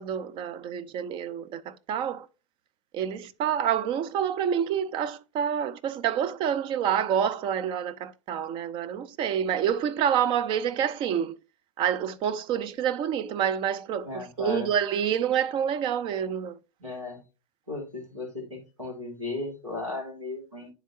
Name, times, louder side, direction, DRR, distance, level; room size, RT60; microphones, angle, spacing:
voice 1, 0.0-2.3 2.9-11.4 11.8-16.6, right 8 dB, 30° right, 0.4 m, -28 dB
voice 2, 14.0-14.7 16.8-17.2 17.7-20.7, left 3 dB, 85° right, 2.6 m, -36 dB
9.9 x 3.8 x 2.7 m
figure-of-eight pair, 95°, 16 cm